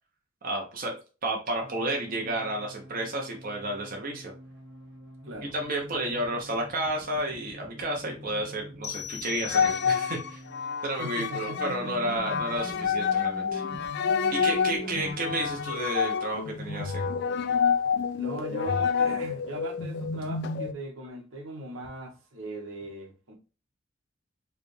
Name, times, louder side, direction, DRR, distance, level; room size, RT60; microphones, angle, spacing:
voice 1, 0.4-0.9 1.2-4.3 5.5-10.4 10.8-13.6 14.3-17.2, right 1 dB, 45° right, 0.9 m, -31 dB
sound 1, 1.6-10.8 11.4-15.1, right 1 dB, 65° right, 1.3 m, -45 dB
voice 2, 5.2-5.5 11.0-11.9 14.8-15.1 15.4-15.5 18.1-23.3, right 1 dB, 85° right, 1.1 m, -39 dB
sound 2, 8.8-10.4, left 7 dB, 30° left, 0.7 m, -39 dB
Cello in electroacoustic music, 9.5-20.7, left 6 dB, 60° left, 0.4 m, -28 dB
4.7 x 2.3 x 3.2 m
head